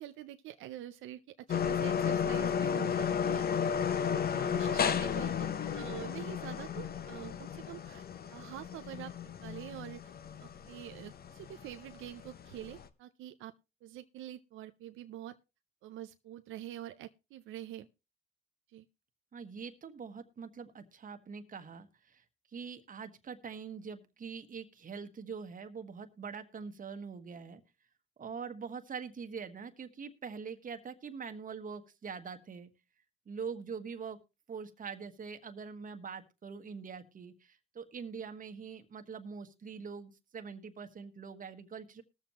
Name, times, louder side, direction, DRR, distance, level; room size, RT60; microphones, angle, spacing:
voice 1, 0.0-3.7 4.0-5.4 5.7-8.0 8.3-9.1 9.4-10.0 10.4-13.5 13.8-15.4 15.8-17.9 18.7-18.9, right 12 dB, 85° right, 0.6 m, -46 dB
sound 1, 1.5-12.9, left 7 dB, 50° left, 0.9 m, -33 dB
voice 2, 4.3-4.9 19.3-22.2 22.5-27.6 28.2-32.7 33.3-34.2 34.5-42.0, right 6 dB, 45° right, 1.4 m, -44 dB
20.5 x 7.2 x 3.0 m
cardioid pair, 90°, 20 cm